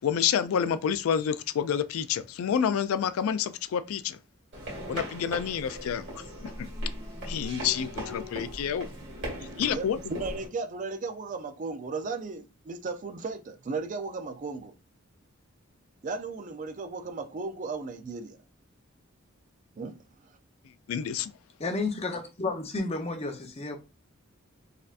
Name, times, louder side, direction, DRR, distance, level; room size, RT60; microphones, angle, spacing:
voice 1, 0.0-4.2 4.9-6.1 6.4-6.7 7.3-8.9 9.6-10.0 20.9-21.3, left 8 dB, 85° left, 0.3 m, -28 dB
sound 1, 4.5-10.5, equal, 55° right, 1.8 m, -38 dB
voice 2, 9.7-14.7 16.0-18.4 19.7-20.0, right 4 dB, 40° right, 0.4 m, -35 dB
voice 3, 21.6-23.8, left 3 dB, 30° left, 0.6 m, -31 dB
4.1 x 2.7 x 2.4 m
head